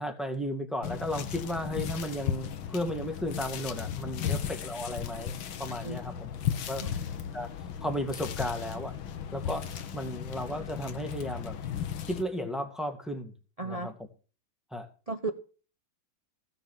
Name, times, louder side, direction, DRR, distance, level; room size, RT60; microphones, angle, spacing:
voice 1, 0.0-6.3 6.7-6.9 7.3-7.5 7.8-8.9 9.3-11.6 12.1-13.3 13.6-13.9 14.7-14.9, equal, ahead, 5 dB, 1.8 m, -34 dB
sound 1, 0.8-12.2, left 8 dB, 75° left, 1.8 m, -36 dB
voice 2, 13.6-13.9 15.1-15.3, right 3 dB, 65° right, 7 dB, 0.3 m, -34 dB
16.0 x 6.8 x 7.2 m, 0.37 s
omnidirectional pair, 2.3 m